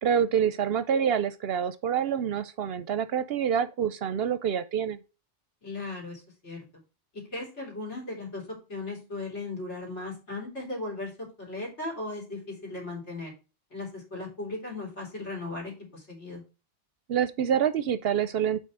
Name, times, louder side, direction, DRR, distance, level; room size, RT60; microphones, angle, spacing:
voice 1, 0.0-5.0 17.1-18.6, right 8 dB, 65° right, 0.7 m, -27 dB
voice 2, 5.6-6.6 7.3-8.4 8.7-11.1 11.4-13.3 13.7-16.4, left 2 dB, 75° left, 3.6 m, -37 dB
5.7 x 4.4 x 6.1 m
omnidirectional pair, 1.2 m